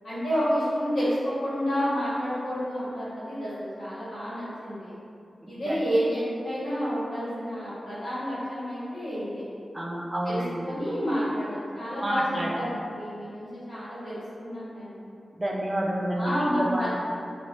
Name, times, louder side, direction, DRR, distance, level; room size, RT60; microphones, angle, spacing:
voice 1, 0.0-5.0 5.5-9.4 10.2-12.2 12.5-15.0 16.1-16.9, equal, 90° left, -12 dB, 1.5 m, -29 dB
voice 2, 5.4-5.8 9.7-10.7 12.0-12.6 15.4-16.9, right 1 dB, 15° right, -2 dB, 0.4 m, -29 dB
2.7 x 2.6 x 3.0 m, 2.5 s
wide cardioid pair, 140°, 0 cm